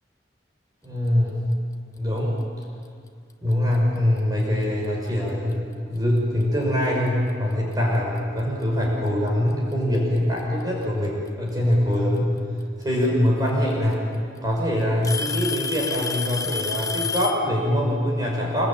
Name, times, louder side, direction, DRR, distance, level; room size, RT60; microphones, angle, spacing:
voice 1, 0.8-1.4 2.0-2.4 3.4-12.4 12.8-14.0 14.4-18.7, left 1 dB, 20° right, -2 dB, 5.8 m, -23 dB
Alarm / Tick-tock, 3.5-3.7 4.6-4.7 5.5-5.6 7.3-7.4 8.6-8.7 9.9-10.4 12.2-12.3 13.5-13.6 13.9-14.4 15.0-17.5, left 5 dB, 20° left, 0.9 m, -29 dB
27.0 x 24.5 x 8.8 m, 2.2 s
head